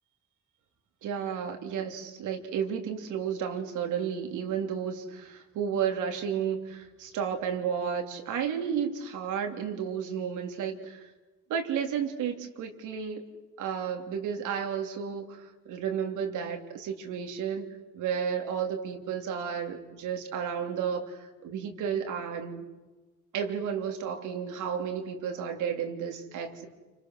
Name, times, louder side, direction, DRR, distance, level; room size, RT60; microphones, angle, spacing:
voice 1, 1.0-11.1 11.5-13.2 13.6-17.7 17.9-22.6 23.3-26.7, right 7 dB, 90° right, 4 dB, 3.3 m, -32 dB
29.0 x 26.5 x 6.5 m, 1.2 s
cardioid pair, 90°, 30 cm